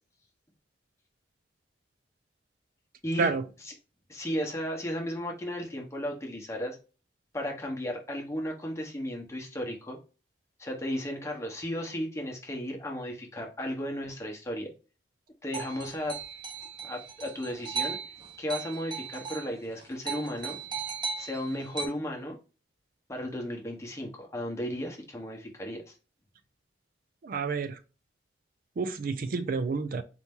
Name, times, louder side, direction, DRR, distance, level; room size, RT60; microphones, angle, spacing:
voice 1, 4.1-6.8 7.3-10.0 10.6-14.7 15.4-16.2 16.8-18.0 18.4-20.6 21.2-22.4 23.1-25.9, equal, 15° left, 1.0 m, -34 dB
sound 1, 15.5-19.5 19.8-21.9, right 6 dB, 25° right, 1.0 m, -37 dB
voice 2, 27.2-27.8 28.8-30.0, right 4 dB, 50° right, 0.4 m, -29 dB
4.2 x 2.8 x 3.5 m
head